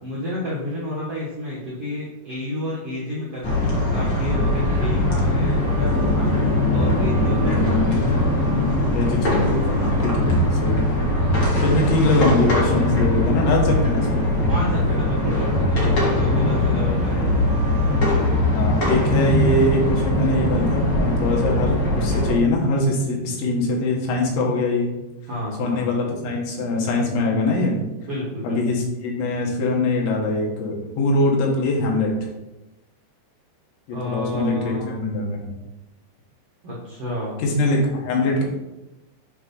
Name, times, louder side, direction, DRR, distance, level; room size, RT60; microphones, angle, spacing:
voice 1, 0.0-8.0 9.9-10.4 13.7-14.0 14.5-17.4 25.3-25.9 28.0-28.6 33.9-35.1 36.6-37.4, left 1 dB, 85° right, -6 dB, 1.3 m, -31 dB
sound 1, 3.4-22.4, left 1 dB, 50° left, 1.3 m, -21 dB
voice 2, 8.9-10.3 10.6-10.8 11.6-14.1 18.6-24.9 25.6-27.8 28.4-32.1 33.9-35.5 37.4-38.5, left 2 dB, 85° left, -2 dB, 3.8 m, -22 dB
8.6 x 3.6 x 5.4 m, 1.0 s
omnidirectional pair, 5.1 m